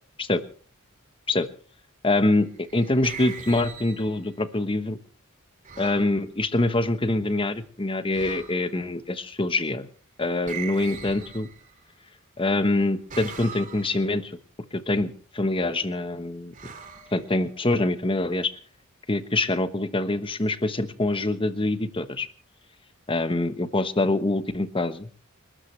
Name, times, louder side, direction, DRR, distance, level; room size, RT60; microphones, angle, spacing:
voice 1, 2.0-5.0 5.8-9.9 10.2-11.5 12.4-14.4 14.7-16.5 17.1-18.5 19.1-22.3 23.1-25.1, left 2 dB, 25° left, 11 dB, 1.1 m, -25 dB
sound 1, 2.4-4.4 5.6-6.2 8.1-8.8 10.4-11.9 13.1-14.1 16.5-17.7, right 6 dB, 40° right, 2.6 m, -41 dB
29.5 x 13.0 x 3.2 m, 0.40 s
head